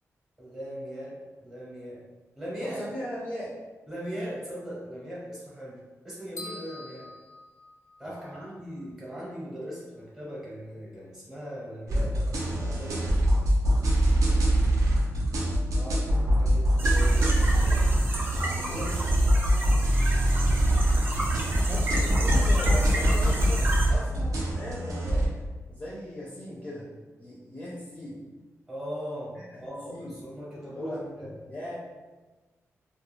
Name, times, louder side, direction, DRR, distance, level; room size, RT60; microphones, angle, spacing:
voice 1, 0.4-2.0 2.3-2.8 3.9-5.8 6.0-7.1 8.0-13.0 16.4-19.2 28.7-31.3, equal, 10° right, -6 dB, 0.8 m, -39 dB
voice 2, 2.6-3.6 8.0-8.5 15.7-16.1 21.6-25.3 25.7-26.9 27.2-28.2 29.3-30.2 30.7-31.8, left 1 dB, 25° left, -7 dB, 0.5 m, -38 dB
sound 1, 6.4-8.3, left 2 dB, 90° left, 0.4 m, -44 dB
sound 2, 11.9-25.3, right 1 dB, 90° right, 0.5 m, -23 dB
sound 3, 16.8-23.9, right 1 dB, 40° right, 0.5 m, -33 dB
2.3 x 2.2 x 3.0 m, 1.2 s
wide cardioid pair, 160°, 6 cm